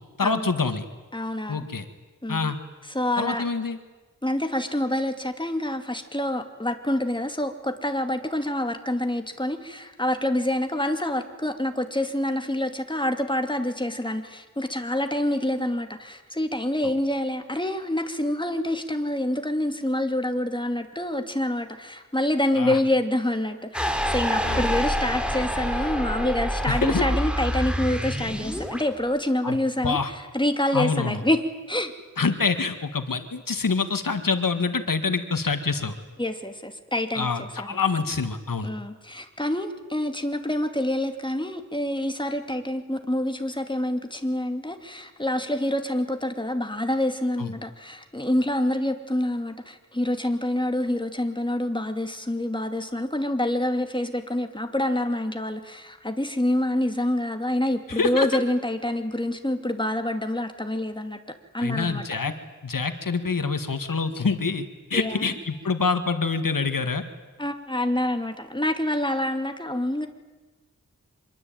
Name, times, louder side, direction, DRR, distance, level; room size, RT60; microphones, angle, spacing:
voice 1, 0.2-0.8 1.5-1.9 2.3-2.6 3.2-3.8 22.6-22.8 24.4-24.6 26.7-27.0 29.4-29.6 29.8-30.1 30.7-31.2 32.2-35.9 37.1-38.7 47.4-47.5 57.9-58.3 61.6-62.3 62.6-64.7 64.9-67.0, left 4 dB, 85° left, 8 dB, 1.9 m, -26 dB
voice 2, 1.1-1.6 2.2-2.5 2.9-3.4 4.2-31.4 31.7-31.9 36.2-37.8 38.6-61.2 61.5-62.0 64.9-65.3 67.4-70.1, left 1 dB, 15° left, 6 dB, 2.7 m, -27 dB
sound 1, 23.7-28.8, equal, 5° right, 3.6 m, -27 dB
25.5 x 22.0 x 9.1 m, 1.2 s
wide cardioid pair, 50°, 33 cm